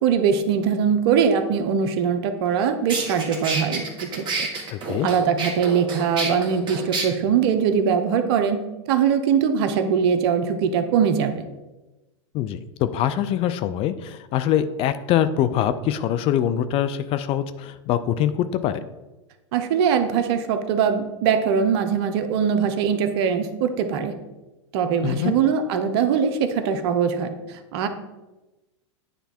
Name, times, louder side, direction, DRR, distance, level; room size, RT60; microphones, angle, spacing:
voice 1, 0.0-4.5 5.0-8.6 8.9-11.5 19.5-24.1 24.7-27.9, right 7 dB, 55° right, 8 dB, 0.8 m, -22 dB
sound 1, 2.5-2.6 2.9-7.1, right 3 dB, 30° right, 1.6 m, -28 dB
voice 2, 4.7-5.1 12.3-18.8 25.0-25.3, left 10 dB, 40° left, 12 dB, 0.4 m, -24 dB
9.3 x 3.4 x 4.3 m, 1.1 s
hypercardioid pair, 105°, 16 cm